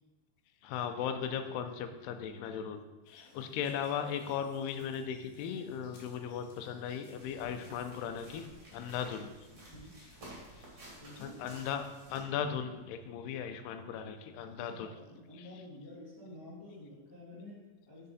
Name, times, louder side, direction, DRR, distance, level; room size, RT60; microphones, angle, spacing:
voice 1, 0.6-2.8 3.1-8.5 8.7-9.3 11.2-14.9 15.4-15.5, left 8 dB, 85° left, 8 dB, 2.7 m, -37 dB
sound 1, 3.1-8.7, left 3 dB, 65° left, 3.5 m, -61 dB
sound 2, 7.1-12.2, right 1 dB, 35° right, 2.7 m, -53 dB
voice 2, 11.0-11.4 14.5-18.1, left 1 dB, 30° left, -11 dB, 2.9 m, -50 dB
9.7 x 6.3 x 4.2 m, 1.1 s
omnidirectional pair, 4.8 m